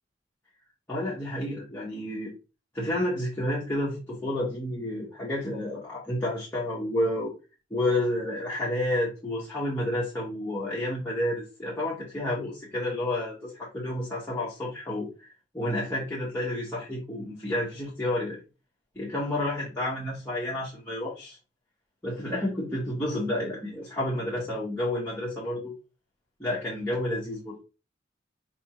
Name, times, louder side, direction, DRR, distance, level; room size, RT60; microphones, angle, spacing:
voice 1, 0.9-2.3 2.7-7.3 7.7-18.4 18.9-21.4 22.0-25.7 26.4-27.5, left 1 dB, 10° left, -7 dB, 1.0 m, -30 dB
5.1 x 2.9 x 3.0 m, 0.31 s
head